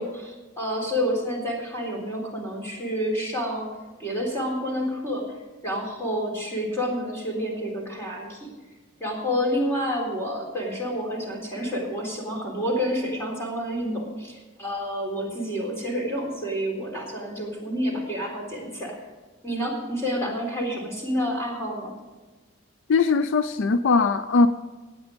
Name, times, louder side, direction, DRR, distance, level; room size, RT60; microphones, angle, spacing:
voice 1, 0.0-3.7 4.0-5.2 5.6-8.5 9.0-19.0 19.4-21.9, equal, 15° left, 3.7 m, -29 dB
voice 2, 22.9-24.5, left 4 dB, 65° left, 0.4 m, -20 dB
16.5 x 9.1 x 5.1 m
head